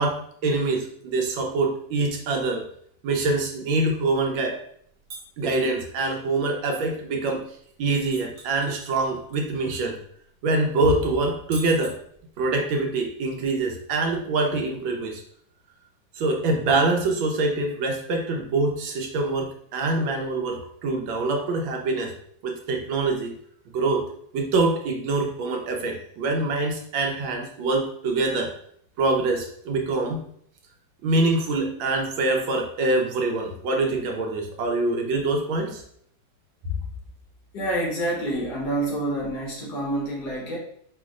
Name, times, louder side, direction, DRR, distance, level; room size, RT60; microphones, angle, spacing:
voice 1, 0.0-2.6 3.0-4.6 5.4-7.4 7.8-10.0 10.4-11.9 12.4-15.2 16.1-22.1 22.4-23.3 23.7-24.0 24.3-28.5 29.0-30.2 31.0-35.8, right 2 dB, 85° right, 2 dB, 1.5 m, -25 dB
sound 1, 5.1-5.7 8.1-9.4 9.7-9.8 11.5-12.5, right 4 dB, 70° right, 1.6 m, -42 dB
voice 2, 37.5-40.6, right 1 dB, 60° left, -3 dB, 1.6 m, -27 dB
4.9 x 3.1 x 2.4 m, 0.64 s
omnidirectional pair, 2.1 m